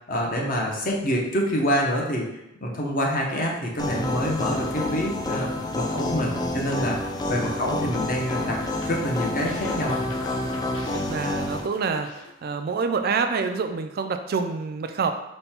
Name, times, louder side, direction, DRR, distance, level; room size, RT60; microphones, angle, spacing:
voice 1, 0.1-2.3 2.6-5.5 5.7-7.0 7.3-8.6 8.9-10.1, equal, 45° left, -1 dB, 0.9 m, -26 dB
sound 1, 3.8-11.6, left 1 dB, 20° left, 0.4 m, -29 dB
voice 2, 6.1-6.5 7.4-7.6 10.9-12.1 12.4-15.1, right 5 dB, 50° right, 7 dB, 0.3 m, -27 dB
sound 2, 8.4-12.8 13.1-13.5, left 3 dB, 75° left, 0.5 m, -41 dB
5.3 x 2.2 x 4.3 m, 0.87 s
head